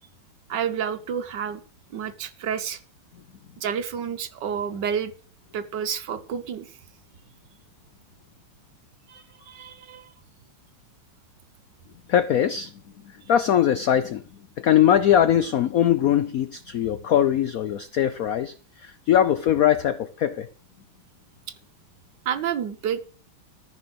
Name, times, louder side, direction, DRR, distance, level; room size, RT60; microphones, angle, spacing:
voice 1, 0.5-1.6 1.9-2.8 3.6-5.1 5.5-6.7 9.1-10.1 22.2-23.0, right 8 dB, 60° right, 1.5 m, -29 dB
voice 2, 12.1-12.7 13.3-14.2 14.6-18.5 18.8-20.5, left 10 dB, 75° left, 0.8 m, -21 dB
14.0 x 5.9 x 7.8 m
omnidirectional pair, 2.3 m